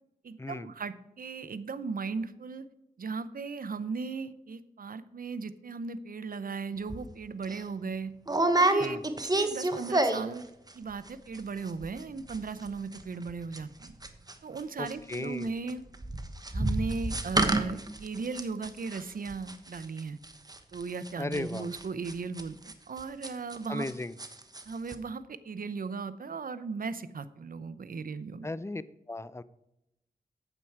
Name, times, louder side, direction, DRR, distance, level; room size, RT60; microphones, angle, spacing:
voice 1, 0.2-2.7 3.0-8.1 8.5-10.5 10.7-13.9 14.4-15.8 16.5-20.2 20.7-23.9 24.7-28.5, right 4 dB, 65° right, 14 dB, 0.7 m, -37 dB
sound 1, 6.9-7.1 7.4-7.6 8.3-10.4 10.7-11.1 11.3-11.4 11.7-12.0 12.3-14.6 14.9-23.9 24.2-24.6 24.9-25.0, right 2 dB, 25° right, 1.1 m, -29 dB
voice 2, 14.8-15.5 21.2-21.7 23.7-24.2 28.4-28.8 29.1-29.4, left 2 dB, 15° left, 16 dB, 0.5 m, -36 dB
8.9 x 7.8 x 4.7 m, 0.85 s
cardioid pair, 55°, 16 cm